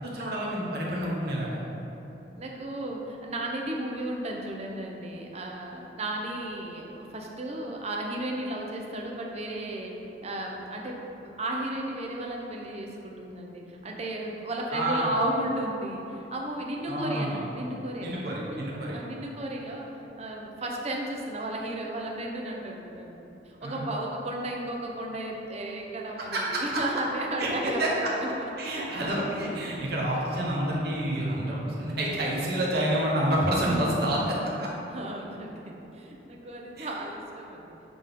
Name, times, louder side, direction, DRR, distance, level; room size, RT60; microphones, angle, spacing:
voice 1, 0.0-1.6 14.7-15.2 16.9-17.4 18.0-19.0 23.6-23.8 26.3-26.8 27.4-27.9 28.6-34.7 36.8-36.9, right 1 dB, 55° right, -4 dB, 1.2 m, -28 dB
voice 2, 2.4-9.9 10.2-19.9 20.2-29.1 34.9-37.7, right 1 dB, 35° right, 0 dB, 0.6 m, -34 dB
7.7 x 3.7 x 3.6 m, 3.0 s
head